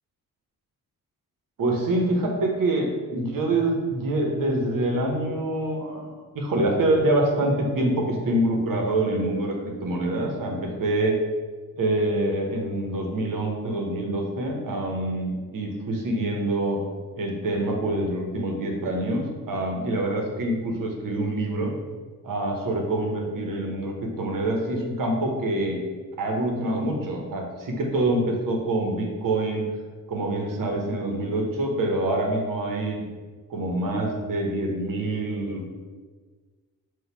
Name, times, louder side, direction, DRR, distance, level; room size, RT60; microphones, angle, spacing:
voice 1, 1.6-11.2 11.8-16.8 17.2-21.7 22.2-25.8 26.2-29.6 30.1-33.1 33.5-35.7, right 1 dB, 50° right, 1 dB, 1.1 m, -26 dB
4.0 x 2.6 x 4.6 m, 1.4 s
hypercardioid pair, 45°, 41 cm